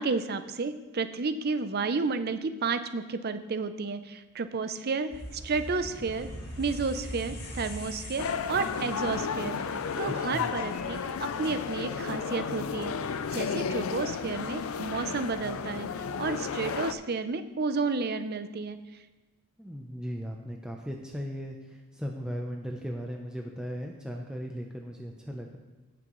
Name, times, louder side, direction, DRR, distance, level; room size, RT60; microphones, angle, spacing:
voice 1, 0.0-6.3 6.6-9.7 10.0-12.9 13.3-15.9 16.2-18.8, right 4 dB, 45° right, 10 dB, 0.5 m, -31 dB
sound 1, 5.1-15.1, equal, 50° left, 2.6 m, -43 dB
sound 2, 8.2-16.9, left 6 dB, 75° left, 0.5 m, -33 dB
voice 2, 10.1-10.5 19.6-25.6, equal, 5° right, 0 dB, 0.6 m, -37 dB
17.0 x 6.1 x 3.1 m, 1.2 s
head